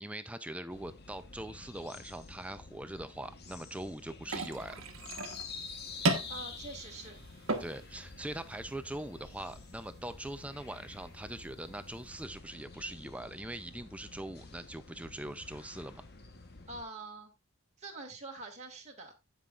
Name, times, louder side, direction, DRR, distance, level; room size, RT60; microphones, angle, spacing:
voice 1, 0.0-4.8 7.6-16.1, right 1 dB, 5° right, 0.4 m, -42 dB
sound 1, 0.7-16.8, left 4 dB, 45° left, 1.2 m, -49 dB
sound 2, 4.2-12.2, right 2 dB, 70° right, 1.3 m, -39 dB
voice 2, 6.3-7.2 16.7-17.3 17.8-19.1, right 3 dB, 30° right, 2.1 m, -45 dB
16.0 x 5.5 x 2.4 m
head